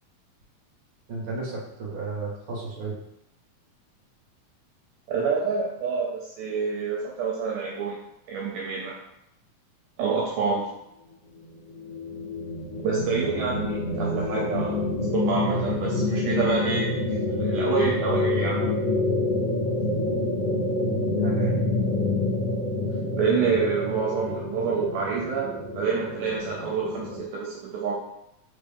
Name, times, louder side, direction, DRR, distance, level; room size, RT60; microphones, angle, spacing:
voice 1, 1.1-3.0 20.8-21.6, right 4 dB, 50° right, -6 dB, 1.8 m, -32 dB
voice 2, 5.1-8.0 8.3-8.9 10.0-10.7 12.8-14.8 15.1-18.6 23.2-25.5 25.8-27.9, right 5 dB, 75° right, -3 dB, 2.1 m, -27 dB
sound 1, 11.4-27.2, left 2 dB, 90° left, 1.3 m, -27 dB
5.3 x 2.8 x 3.5 m, 0.85 s
omnidirectional pair, 3.9 m